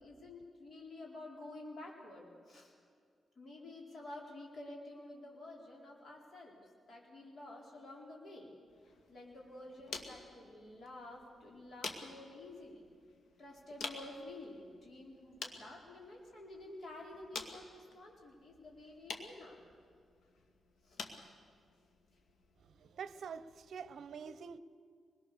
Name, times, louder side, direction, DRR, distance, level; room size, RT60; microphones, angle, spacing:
voice 1, 0.0-2.7 3.4-8.5 9.1-12.8 13.4-19.7 20.8-21.0 23.8-23.9 24.3-24.4, left 2 dB, 50° left, 4.5 m, -51 dB
sound 1, 8.7-23.7, left 4 dB, 80° left, 2.2 m, -50 dB
voice 2, 22.6-24.6, right 6 dB, 70° right, 0.7 m, -46 dB
25.0 x 21.5 x 6.9 m
wide cardioid pair, 140°, 0 cm